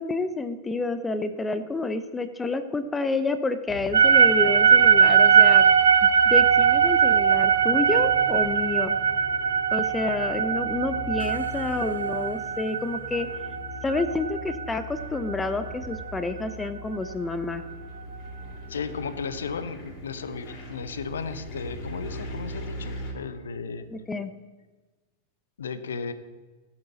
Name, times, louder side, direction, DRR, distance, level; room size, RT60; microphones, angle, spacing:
voice 1, 0.0-5.6 6.3-8.9 9.7-13.3 13.8-17.6 23.9-24.3, left 3 dB, 15° left, 11 dB, 0.9 m, -29 dB
sound 1, 3.7-23.1, left 1 dB, 35° left, 4.4 m, -40 dB
sound 2, 3.9-16.1, right 7 dB, 70° right, 0.7 m, -20 dB
voice 2, 18.7-23.9 25.6-26.1, left 5 dB, 70° left, 12 dB, 1.0 m, -35 dB
17.5 x 8.8 x 4.2 m, 1.2 s
figure-of-eight pair, 90°, 0 cm